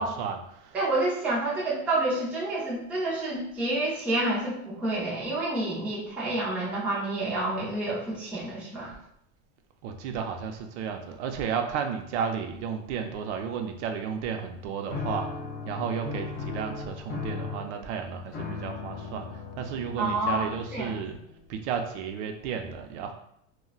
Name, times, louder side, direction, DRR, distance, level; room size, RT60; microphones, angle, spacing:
voice 1, 0.0-0.8 9.8-15.3 15.6-19.3 19.6-21.2 21.5-23.1, right 7 dB, 60° right, 5 dB, 0.5 m, -33 dB
voice 2, 0.7-8.9 20.0-21.0, right 2 dB, 5° right, -7 dB, 0.4 m, -29 dB
sound 1, 14.9-21.4, left 5 dB, 50° left, 0.9 m, -37 dB
3.7 x 2.2 x 2.3 m, 0.74 s
supercardioid pair, 145°, 39 cm